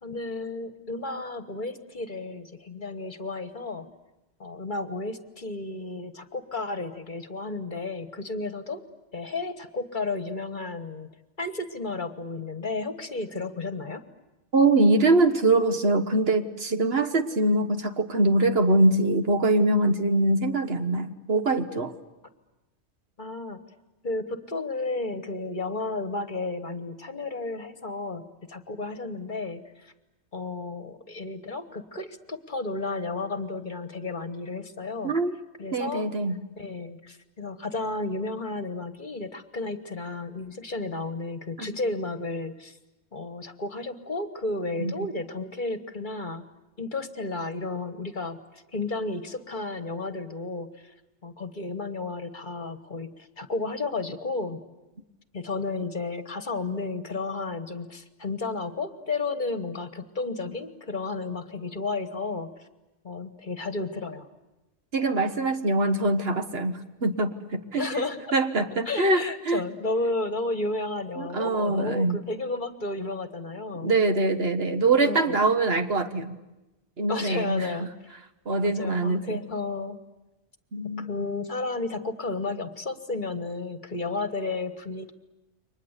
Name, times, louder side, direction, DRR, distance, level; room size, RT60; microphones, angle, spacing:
voice 1, 0.0-3.9 4.4-8.8 9.1-11.1 11.4-14.0 23.2-23.6 24.0-28.2 28.5-29.9 30.3-35.1 35.6-36.0 36.6-42.8 43.1-46.4 46.8-50.9 51.2-54.6 55.3-62.7 63.0-64.3 67.8-68.3 68.9-73.9 75.0-75.4 77.1-77.9 78.6-80.0 81.0-85.1, left 3 dB, 45° left, 10 dB, 1.5 m, -32 dB
voice 2, 14.5-21.9 35.0-35.3 35.7-36.4 41.6-41.8 44.8-44.9 64.9-67.9 68.3-69.6 71.2-72.2 73.8-76.3 77.0-77.9 78.4-79.4 80.7-81.1, right 2 dB, 55° right, 8 dB, 1.6 m, -23 dB
29.5 x 24.0 x 8.2 m, 1.0 s
omnidirectional pair, 1.2 m